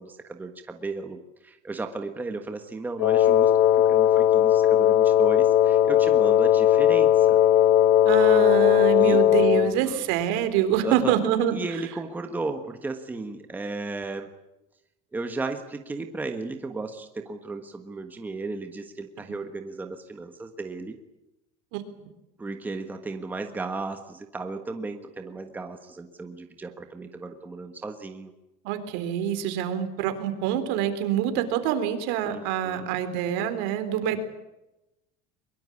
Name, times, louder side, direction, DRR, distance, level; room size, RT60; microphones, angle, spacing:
voice 1, 0.0-3.5 3.8-7.4 9.0-9.2 9.5-10.1 10.8-11.2 11.5-14.3 15.1-21.0 22.4-28.3 32.2-32.9 34.1-34.2, right 3 dB, 10° right, 6 dB, 1.4 m, -35 dB
Wind instrument woodwind instrument, 3.0-9.8, left 11 dB, 60° left, 1.1 m, -18 dB
voice 2, 8.1-11.5 21.7-21.8 28.6-34.2, right 10 dB, 65° right, 9 dB, 3.7 m, -26 dB
23.0 x 22.5 x 8.5 m, 0.95 s
cardioid pair, 170°, 20 cm